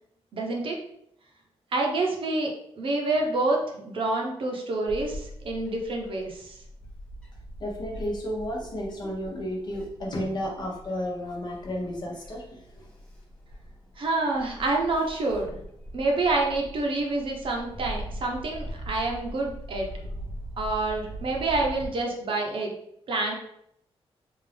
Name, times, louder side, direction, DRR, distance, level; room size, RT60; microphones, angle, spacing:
voice 1, 0.3-0.8 1.7-6.6 14.0-15.5 15.9-19.9 20.6-22.7 23.1-23.3, right 2 dB, 55° right, 1 dB, 0.7 m, -27 dB
Bird / Wind, 4.9-21.9, equal, 10° left, 0.7 m, -41 dB
voice 2, 7.6-12.8, equal, 45° left, -1 dB, 0.9 m, -32 dB
3.6 x 2.5 x 3.3 m, 0.73 s
wide cardioid pair, 145°, 11 cm